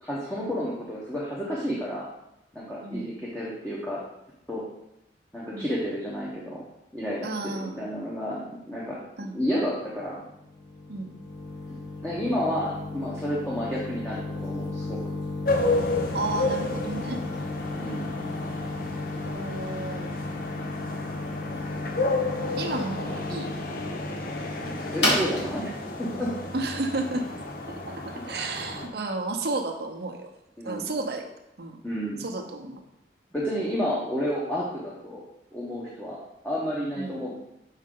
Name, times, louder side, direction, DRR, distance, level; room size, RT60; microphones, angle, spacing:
voice 1, 0.0-2.1 2.5-4.0 4.5-4.6 5.3-6.6 6.9-9.0 9.3-10.2 12.0-15.1 17.8-18.1 24.9-25.7 26.0-26.3 30.6-30.9 31.8-32.2 33.3-35.2 35.5-37.4, equal, 5° left, -7 dB, 0.9 m, -31 dB
voice 2, 7.2-7.8 9.2-9.4 10.9-11.1 16.1-17.2 19.2-20.2 22.6-23.5 26.5-27.3 27.7-30.3 30.6-31.3 31.6-31.8 32.2-32.8 37.0-37.2, right 2 dB, 55° right, 3 dB, 0.8 m, -32 dB
sound 1, 9.9-27.6, left 2 dB, 70° left, 1.7 m, -34 dB
sound 2, 15.4-28.9, left 2 dB, 50° left, 0.8 m, -32 dB
6.4 x 4.7 x 3.8 m, 0.85 s
head